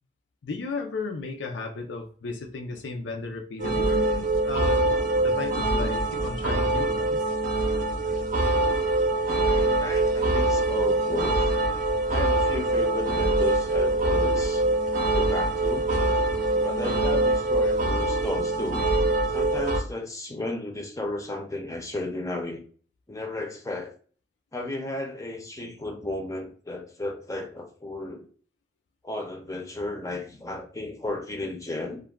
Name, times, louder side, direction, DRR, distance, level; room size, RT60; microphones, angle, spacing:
voice 1, 0.4-4.9 5.2-7.4, left 4 dB, 85° left, 0.5 m, -34 dB
sound 1, 3.6-19.8, right 2 dB, 45° right, 0.6 m, -24 dB
voice 2, 9.5-11.4 12.1-14.6 15.1-15.9 16.6-18.9 19.3-22.6 23.1-23.9 24.5-28.3 29.0-32.0, left 2 dB, 20° left, 0.5 m, -34 dB
2.3 x 2.2 x 3.3 m
head